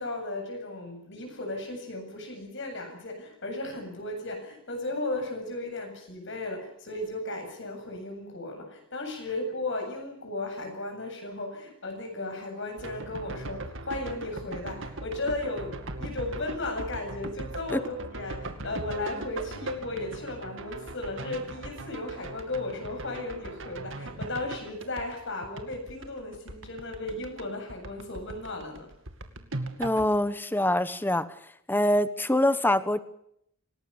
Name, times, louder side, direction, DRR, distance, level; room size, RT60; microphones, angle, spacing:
voice 1, 0.0-28.9, left 2 dB, 60° left, 5 dB, 7.9 m, -35 dB
sound 1, 12.8-27.4 27.7-30.2, right 2 dB, 60° right, 2.5 m, -39 dB
voice 2, 29.8-31.2 31.7-33.0, left 1 dB, 10° left, 13 dB, 1.1 m, -24 dB
26.5 x 19.0 x 7.0 m, 0.72 s
head